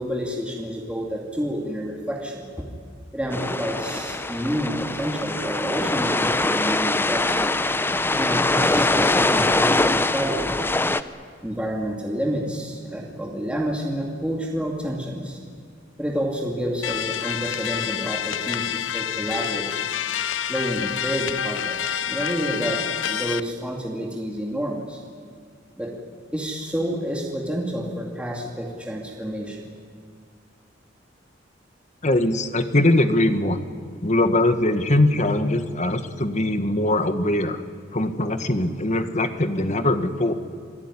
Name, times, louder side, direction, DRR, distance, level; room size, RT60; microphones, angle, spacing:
voice 1, 0.0-2.6 3.1-7.5 8.1-10.6 11.4-15.4 16.0-19.9 20.5-25.0 25.8-25.9 26.3-29.7, equal, 5° right, -1 dB, 2.5 m, -29 dB
sound 1, 3.3-11.0, left 2 dB, 10° left, 0.7 m, -22 dB
sound 2, 16.8-23.4, left 9 dB, 80° left, 0.6 m, -28 dB
voice 2, 32.0-33.6 34.0-37.6 37.9-40.3, left 1 dB, 40° left, 9 dB, 1.5 m, -21 dB
27.5 x 17.5 x 9.9 m, 2.1 s
head